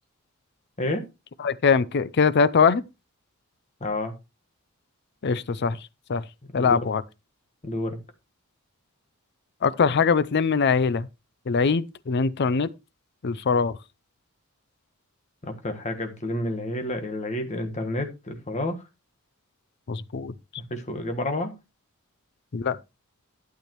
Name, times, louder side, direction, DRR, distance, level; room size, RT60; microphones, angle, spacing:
voice 1, 1.4-2.8 5.2-5.8 6.1-6.2 6.5-7.0 9.6-11.1 11.5-12.7 13.2-13.7 19.9-20.3 22.5-22.8, left 5 dB, 50° left, 0.5 m, -22 dB
voice 2, 3.8-4.1 6.5-6.8 7.6-8.0 15.4-18.8 20.7-21.5, left 1 dB, 35° left, 1.5 m, -30 dB
12.0 x 8.4 x 3.0 m
head